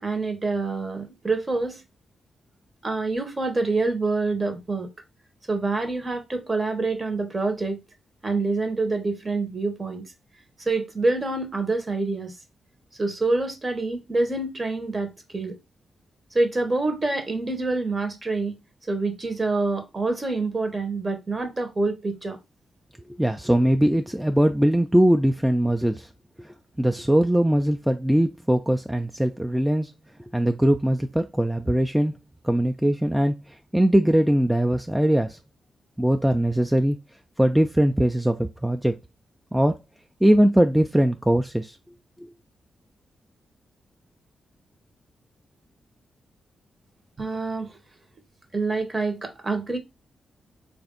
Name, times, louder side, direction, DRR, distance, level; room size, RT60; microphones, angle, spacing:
voice 1, 0.0-1.8 2.8-4.9 5.5-7.8 8.2-10.1 10.6-12.3 13.0-15.6 16.3-18.6 18.9-22.4 47.2-47.7 48.5-49.8, right 3 dB, 35° right, 1.1 m, -26 dB
voice 2, 23.1-26.1 26.4-29.9 30.3-32.1 32.4-33.4 33.7-35.4 36.0-37.0 37.4-38.4 38.6-38.9 39.5-39.7 40.2-41.8, right 1 dB, 5° right, 0.4 m, -21 dB
3.3 x 2.6 x 3.7 m
hypercardioid pair, 40°, 0 cm